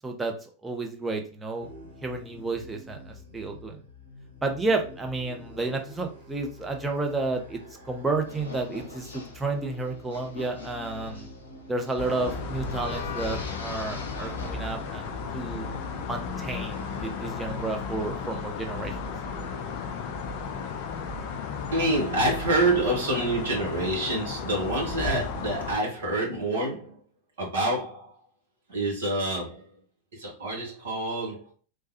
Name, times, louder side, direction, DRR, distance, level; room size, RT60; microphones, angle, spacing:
voice 1, 0.0-1.7 2.0-3.8 4.4-11.3 11.7-15.0 15.3-15.7 16.1-19.0, right 3 dB, 10° right, 2 dB, 0.6 m, -31 dB
sound 1, 1.6-19.7, left 2 dB, 80° right, 1.0 m, -46 dB
sound 2, 8.3-15.1, left 2 dB, 70° left, 0.7 m, -44 dB
sound 3, 12.0-25.8, left 5 dB, 45° left, 0.4 m, -34 dB
voice 2, 21.7-27.0 27.4-28.1 28.7-29.6 30.1-31.5, right 2 dB, 60° right, -2 dB, 1.4 m, -27 dB
3.2 x 2.3 x 2.8 m, 0.39 s
figure-of-eight pair, 90°, 0 cm